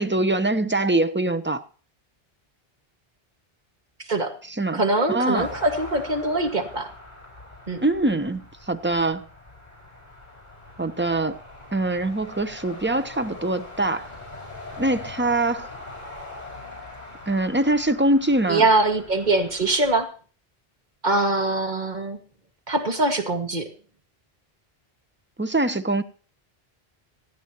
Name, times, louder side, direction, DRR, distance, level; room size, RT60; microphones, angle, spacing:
voice 1, 0.0-1.6 4.5-4.8 5.1-5.5 7.8-9.2 10.8-11.4 11.7-14.1 14.8-15.7 17.3-18.6 25.4-26.0, right 2 dB, 10° right, 0.7 m, -23 dB
voice 2, 4.7-6.9 7.7-7.8 18.5-20.1 21.0-22.2 22.7-23.7, right 2 dB, 45° right, 2.0 m, -23 dB
sound 1, 5.4-20.0, left 2 dB, 45° left, 5.5 m, -42 dB
26.5 x 8.9 x 3.0 m
omnidirectional pair, 1.1 m